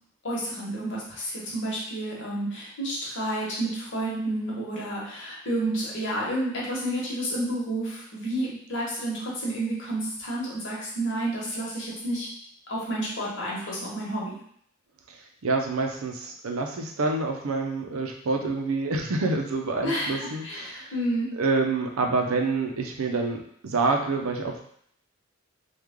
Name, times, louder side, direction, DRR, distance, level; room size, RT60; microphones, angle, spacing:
voice 1, 0.2-12.3 12.7-14.4 19.8-21.3, right 1 dB, 60° left, -5 dB, 1.1 m, -30 dB
voice 2, 15.1-20.9 21.3-24.6, right 3 dB, 90° right, 3 dB, 0.6 m, -27 dB
3.2 x 2.3 x 3.5 m, 0.66 s
head